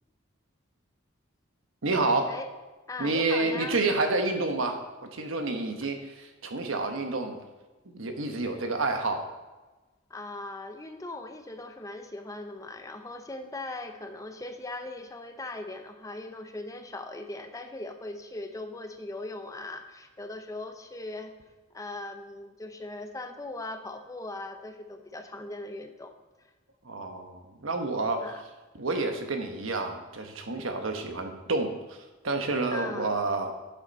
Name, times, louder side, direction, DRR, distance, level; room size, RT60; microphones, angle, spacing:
voice 1, 1.8-2.4 3.0-4.8 5.1-7.4 7.9-9.3 26.8-28.3 28.8-32.0 32.2-33.5, right 2 dB, 75° right, 5 dB, 1.1 m, -29 dB
voice 2, 2.9-3.8 10.1-21.3 21.7-26.1 28.2-28.4 32.7-33.1, left 2 dB, 15° left, 7 dB, 0.5 m, -39 dB
8.1 x 6.8 x 5.3 m, 1.2 s
head